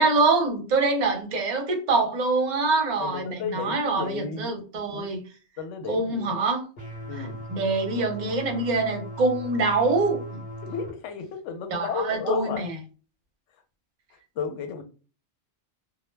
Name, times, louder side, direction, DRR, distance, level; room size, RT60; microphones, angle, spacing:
voice 1, 0.0-5.2 5.9-6.6 7.2-10.4 11.7-12.7, right 3 dB, 45° right, 0.7 m, -25 dB
voice 2, 3.0-4.5 4.9-5.1 5.6-6.4 7.1-7.5 10.6-12.6 14.4-14.8, left 6 dB, 85° left, 0.9 m, -33 dB
sound 1, 6.8-10.9, equal, 60° left, 1.0 m, -38 dB
2.2 x 2.1 x 3.1 m
omnidirectional pair, 1.2 m